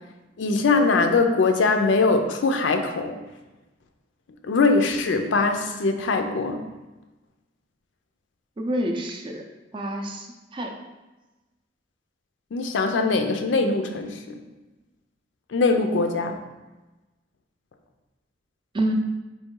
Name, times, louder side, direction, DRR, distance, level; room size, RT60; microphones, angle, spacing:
voice 1, 0.4-3.2 4.4-6.7 12.5-14.4 15.5-16.4, left 3 dB, 80° left, 6 dB, 0.4 m, -22 dB
voice 2, 8.6-9.4 9.7-10.3 10.5-10.7 18.7-18.9, right 1 dB, 25° right, 3 dB, 0.4 m, -27 dB
4.0 x 3.1 x 3.7 m, 1.1 s
head